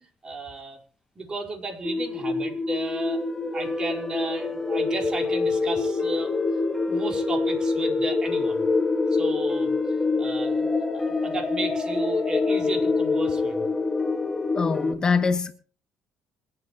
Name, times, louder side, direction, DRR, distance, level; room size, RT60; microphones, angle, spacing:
voice 1, 0.2-0.8 1.2-3.2 3.5-6.6 6.9-8.7 9.1-9.8 10.2-10.7 10.9-13.7, right 2 dB, 30° right, 4.5 m, -34 dB
sound 1, 1.8-14.9, left 3 dB, 15° left, 2.7 m, -25 dB
voice 2, 14.5-15.5, left 5 dB, 30° left, 1.4 m, -23 dB
27.0 x 9.2 x 3.0 m
cardioid pair, 100°, 3 cm